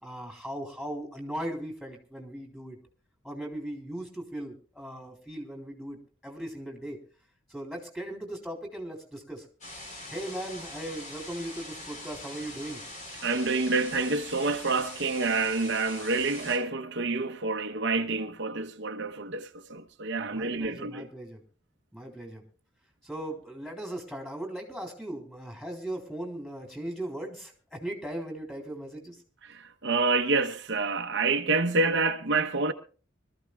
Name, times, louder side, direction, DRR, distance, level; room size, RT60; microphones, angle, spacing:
voice 1, 0.0-2.8 3.2-7.0 7.5-9.5 10.1-12.8 20.2-21.4 21.9-22.4 23.0-29.2, right 1 dB, ahead, 3.7 m, -38 dB
sound 1, 9.6-16.6, left 1 dB, 40° left, 4.5 m, -43 dB
voice 2, 13.2-21.1 29.4-32.7, right 3 dB, 65° right, 1.0 m, -28 dB
25.0 x 14.0 x 2.4 m
head